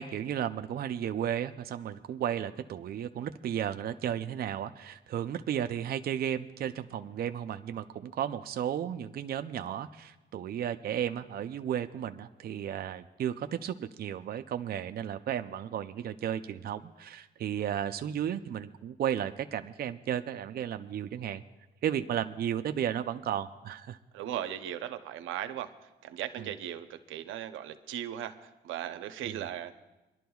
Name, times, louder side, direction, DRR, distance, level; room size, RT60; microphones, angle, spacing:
voice 1, 0.0-21.4 21.8-24.0 26.4-26.5 29.3-29.4, right 9 dB, 50° right, 9 dB, 0.5 m, -34 dB
voice 2, 24.1-29.7, right 11 dB, 85° right, 9 dB, 0.7 m, -38 dB
27.0 x 11.5 x 2.3 m, 1.0 s
cardioid pair, 90°, 20 cm